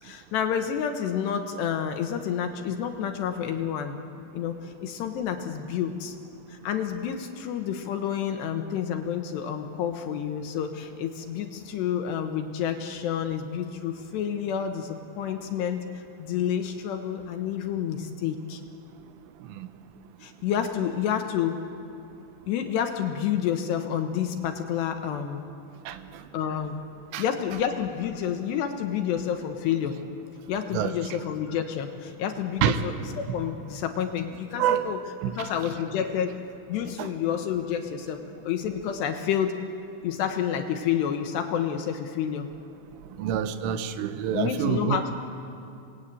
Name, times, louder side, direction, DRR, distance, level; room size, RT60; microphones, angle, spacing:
voice 1, 0.0-4.0 4.3-6.2 6.5-18.6 20.2-21.6 22.5-25.4 26.3-26.8 27.2-30.0 30.5-35.0 35.4-36.4 36.7-39.6 40.0-42.5 44.3-45.1, left 9 dB, 70° left, 6 dB, 2.9 m, -29 dB
voice 2, 34.6-34.9 35.2-35.5 37.0-37.1 43.2-45.0, right 9 dB, 85° right, 9 dB, 3.6 m, -26 dB
27.5 x 20.0 x 9.1 m, 2.6 s
omnidirectional pair, 5.7 m